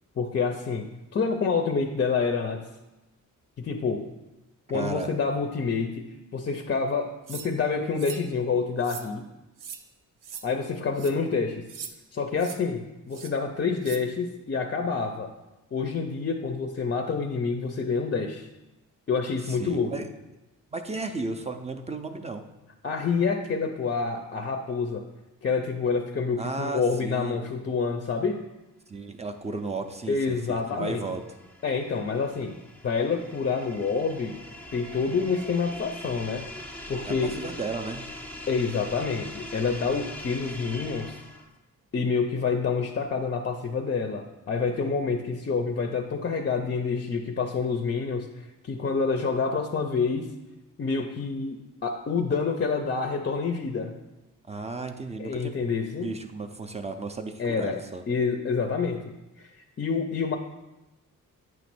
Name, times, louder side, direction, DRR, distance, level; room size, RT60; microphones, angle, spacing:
voice 1, 0.2-2.6 3.6-4.1 4.7-6.0 6.3-9.3 10.4-11.6 12.1-15.3 15.7-18.5 19.1-19.9 22.8-25.0 25.4-28.4 30.1-31.0 31.6-32.6 32.8-34.4 34.7-36.5 36.9-37.3 38.5-41.2 41.9-50.3 50.8-54.0 55.2-56.1 57.4-57.8 58.1-60.4, left 5 dB, 35° left, 5 dB, 0.5 m, -27 dB
voice 2, 4.7-5.1 19.4-20.1 20.7-22.4 26.4-27.4 28.9-31.2 37.1-38.0 54.5-55.5 56.0-58.0, right 3 dB, 20° right, 6 dB, 0.4 m, -34 dB
sound 1, 7.3-7.5 8.0-8.2 8.8-9.1 9.6-9.8 10.2-10.4 10.9-11.1 11.7-11.9 12.4-12.6 13.1-13.3 13.8-14.0, right 7 dB, 75° right, 0.6 m, -40 dB
sound 2, 29.7-41.6, left 1 dB, 5° left, 0.8 m, -42 dB
9.0 x 3.1 x 6.0 m, 1.0 s
wide cardioid pair, 150°, 32 cm